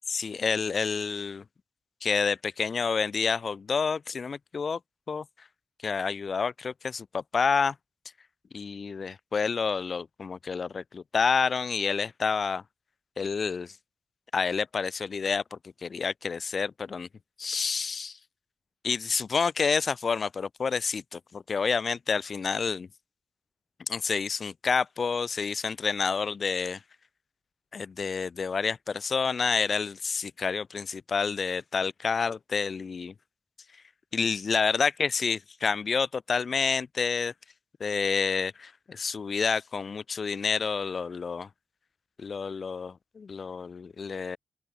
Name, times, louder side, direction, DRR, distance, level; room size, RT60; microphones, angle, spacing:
voice 1, 0.1-1.4 2.0-4.8 5.1-5.2 5.8-7.7 8.5-12.6 13.2-13.7 14.3-17.1 17.4-18.2 18.8-22.9 23.9-26.8 27.7-33.1 34.1-37.3 37.8-41.5 42.2-44.4, left 5 dB, 60° left, 6.0 m, -29 dB
open air
cardioid pair, 55°, 0 cm